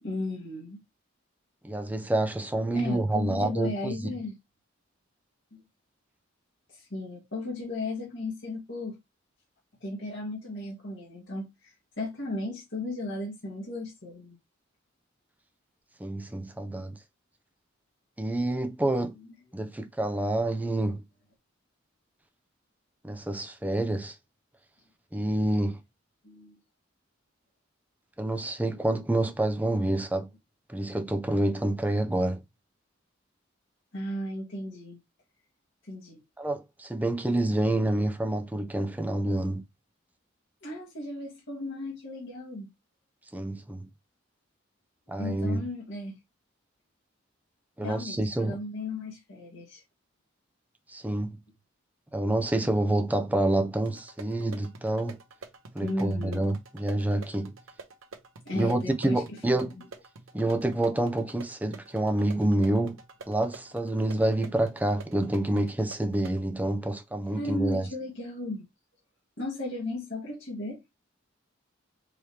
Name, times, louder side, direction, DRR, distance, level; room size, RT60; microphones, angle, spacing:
voice 1, 0.0-0.8 2.7-4.4 5.5-5.6 6.7-9.0 9.8-14.4 19.2-19.3 26.2-26.6 33.9-35.0 35.8-36.2 40.6-42.7 45.2-46.2 47.8-49.8 55.8-56.5 58.5-59.8 67.3-68.7 69.4-70.8, left 2 dB, 60° left, 1.8 m, -35 dB
voice 2, 1.6-4.1 16.0-17.0 18.2-19.1 19.5-21.0 23.0-24.1 25.1-25.8 28.2-30.3 30.7-32.4 36.4-39.6 43.3-43.9 45.1-45.7 47.8-48.6 50.9-51.4 52.1-55.2 55.7-57.5 58.5-59.7 60.3-63.0 63.3-67.9, right 1 dB, 10° right, 0.6 m, -28 dB
sound 1, 53.9-66.4, right 4 dB, 80° right, 1.0 m, -48 dB
4.7 x 3.0 x 3.3 m
head